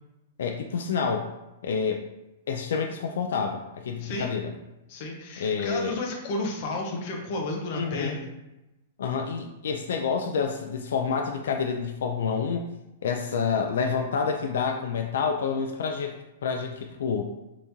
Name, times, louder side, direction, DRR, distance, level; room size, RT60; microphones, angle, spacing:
voice 1, 0.4-1.3 1.6-2.0 2.5-4.5 5.4-6.0 7.7-8.2 9.0-12.6 13.0-16.2 16.4-17.3, left 6 dB, 75° left, 4 dB, 0.3 m, -28 dB
voice 2, 4.0-4.3 4.9-8.3, left 2 dB, 35° left, 1 dB, 0.6 m, -32 dB
3.5 x 2.9 x 2.7 m, 0.97 s
supercardioid pair, 170°, 0 cm